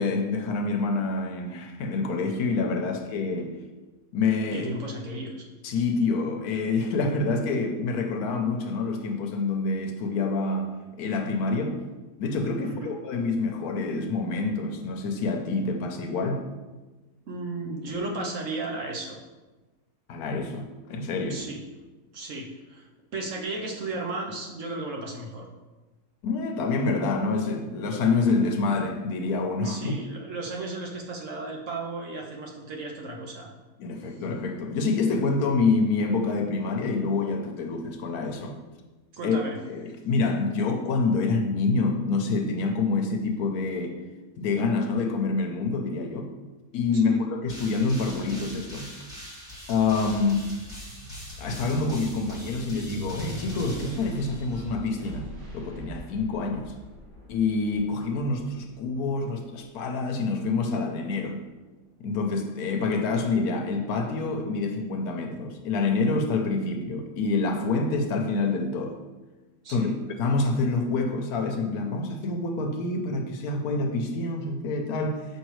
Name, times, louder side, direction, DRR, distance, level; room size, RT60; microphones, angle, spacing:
voice 1, 0.0-3.6 4.1-4.7 5.6-10.7 11.0-11.8 12.2-16.4 20.1-21.4 26.2-29.9 33.8-38.6 39.2-39.4 39.7-44.0 44.4-46.3 46.7-48.9 49.7-50.5 51.4-55.3 55.5-56.7 57.3-61.4 62.0-69.0 69.7-75.3, left 3 dB, 75° left, 4 dB, 1.1 m, -27 dB
voice 2, 4.5-5.5 12.6-12.9 17.3-19.2 21.3-21.6 22.1-25.5 29.6-33.5 39.1-39.6 46.9-47.2 69.6-69.9, right 2 dB, 60° right, 0 dB, 1.0 m, -35 dB
sound 1, 47.5-54.8, left 1 dB, ahead, 1.6 m, -43 dB
sound 2, 49.4-60.2 60.7-61.9, equal, 90° right, 2.3 m, -42 dB
6.4 x 5.0 x 3.1 m, 1.2 s
omnidirectional pair, 1.7 m